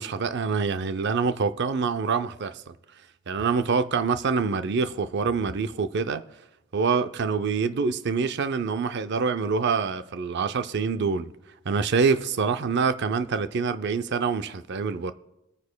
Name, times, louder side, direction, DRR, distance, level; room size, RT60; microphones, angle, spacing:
voice 1, 0.0-2.7 3.3-6.2 6.7-11.3 11.7-15.1, right 5 dB, 55° right, 0.5 m, -26 dB
26.0 x 9.4 x 2.2 m
head